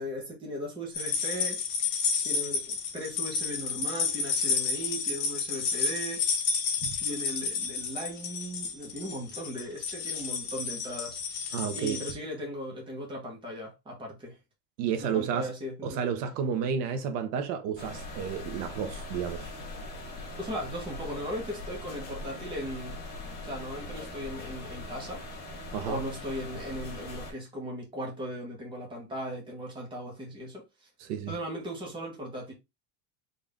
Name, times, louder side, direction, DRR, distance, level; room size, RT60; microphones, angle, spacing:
voice 1, 0.0-1.6 2.2-6.3 7.0-11.2 11.5-14.4 15.0-16.0 20.4-23.0 23.4-25.2 25.8-30.9 31.3-32.5, equal, 10° right, 0.9 m, -38 dB
sound 1, 0.9-12.1, left 5 dB, 50° left, 1.3 m, -31 dB
voice 2, 11.5-12.0 14.8-15.5 15.8-19.5 25.7-26.0 31.0-31.3, right 7 dB, 85° right, 1.0 m, -31 dB
sound 2, 17.8-27.3, left 2 dB, 20° left, 0.8 m, -41 dB
4.0 x 2.5 x 3.4 m
cardioid pair, 175°, 47 cm